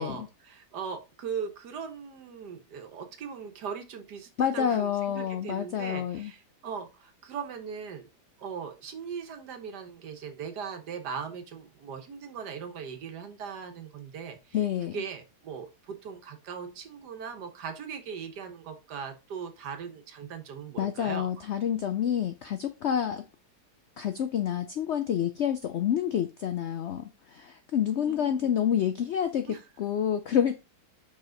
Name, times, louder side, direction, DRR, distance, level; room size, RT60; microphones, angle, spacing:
voice 1, 0.0-8.1 8.4-14.6 14.8-21.3 27.9-28.5 29.5-29.6, right 6 dB, 75° right, 1.6 m, -39 dB
voice 2, 4.4-6.3 14.5-15.0 20.8-23.2 24.0-30.6, left 9 dB, 90° left, 0.6 m, -28 dB
5.4 x 4.9 x 3.8 m
omnidirectional pair, 1.8 m